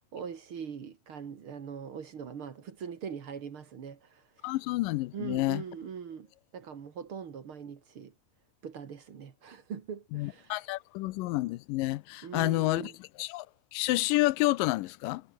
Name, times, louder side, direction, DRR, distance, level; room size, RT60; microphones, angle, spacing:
voice 1, 0.1-4.5 5.1-6.3 6.5-8.1 8.6-10.6 12.2-13.0, right 7 dB, 45° right, 2.1 m, -41 dB
voice 2, 4.4-5.6 10.1-12.9 13.2-13.5 13.7-15.2, left 19 dB, 80° left, 2.2 m, -29 dB
omnidirectional pair, 4.2 m